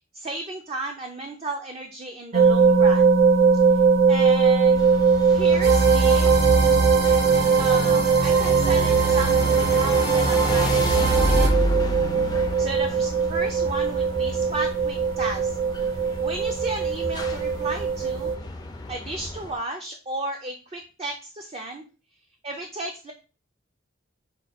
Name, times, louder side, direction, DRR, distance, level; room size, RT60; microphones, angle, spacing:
voice 1, 0.1-3.1 3.7-3.8 4.1-4.9 5.3-6.3 7.6-12.0 12.6-15.9 16.2-18.3 18.9-21.8 22.4-23.1, right 2 dB, 30° right, 3 dB, 0.5 m, -34 dB
sound 1, 2.3-18.4, right 5 dB, 80° right, 0.7 m, -20 dB
sound 2, 4.8-19.5, left 1 dB, 20° left, 0.4 m, -31 dB
sound 3, 5.6-11.5, right 3 dB, 55° right, 1.0 m, -24 dB
5.2 x 2.3 x 4.1 m, 0.34 s
head